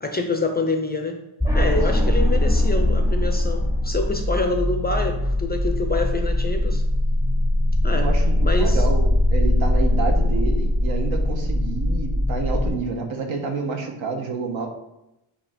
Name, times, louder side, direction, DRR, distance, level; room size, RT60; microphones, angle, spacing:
voice 1, 0.0-1.2 1.5-6.8 7.8-8.1 8.4-8.9, left 2 dB, 20° left, 4 dB, 0.4 m, -26 dB
sound 1, 1.4-12.7, left 1 dB, 5° right, 0.9 m, -21 dB
voice 2, 7.9-14.7, right 4 dB, 65° right, 3 dB, 1.3 m, -29 dB
8.3 x 2.9 x 5.1 m, 0.89 s
wide cardioid pair, 150°, 49 cm